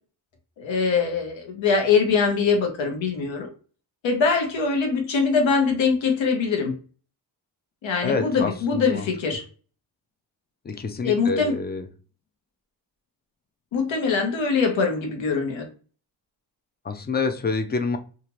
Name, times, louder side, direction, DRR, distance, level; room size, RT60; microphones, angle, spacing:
voice 1, 0.6-3.5 4.0-6.7 7.8-9.4 11.0-11.5 13.7-15.7, left 5 dB, 90° left, 3 dB, 1.0 m, -22 dB
voice 2, 8.0-9.1 10.6-11.9 16.8-18.0, left 4 dB, 25° left, 7 dB, 0.3 m, -27 dB
2.7 x 2.4 x 3.0 m, 0.38 s
cardioid pair, 115°, 44 cm